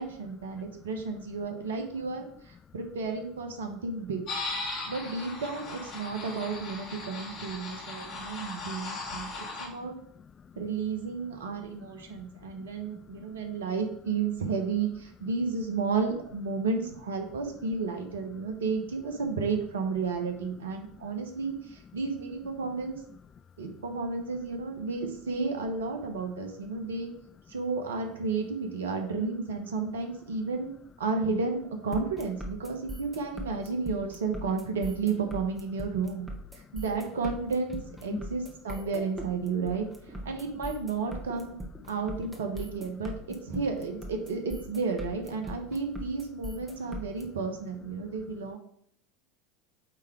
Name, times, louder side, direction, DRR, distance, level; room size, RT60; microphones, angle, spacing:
voice 1, 0.0-4.2 4.9-10.0 10.6-23.0 23.6-27.1 27.5-30.7 31.0-41.6 41.9-48.6, right 4 dB, 75° right, 1.2 m, -32 dB
voice 2, 0.5-0.8 2.7-2.8 4.6-4.9 5.9-6.0 7.7-8.6 9.0-10.6 11.6-13.6 18.4-18.5 24.8-24.9 36.6-36.8 38.1-38.2 46.8-47.0 48.0-48.4, left 6 dB, 30° left, 0.3 m, -49 dB
sound 1, 4.3-9.7, left 3 dB, 50° left, 2.5 m, -38 dB
sound 2, 31.9-47.2, right 1 dB, 10° right, 1.6 m, -40 dB
8.4 x 3.6 x 4.7 m
hypercardioid pair, 75°, 0 cm